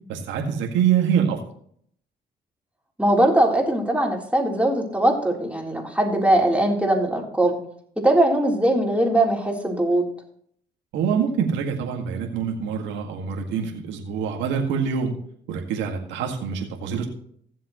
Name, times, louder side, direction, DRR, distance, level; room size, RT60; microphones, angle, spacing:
voice 1, 0.1-1.4 10.9-15.1 15.5-17.1, right 7 dB, 90° right, 1 dB, 2.0 m, -25 dB
voice 2, 3.0-7.5 8.0-10.0, right 1 dB, 5° right, 0 dB, 3.7 m, -20 dB
16.0 x 7.5 x 3.1 m, 0.62 s
supercardioid pair, 60°, 19 cm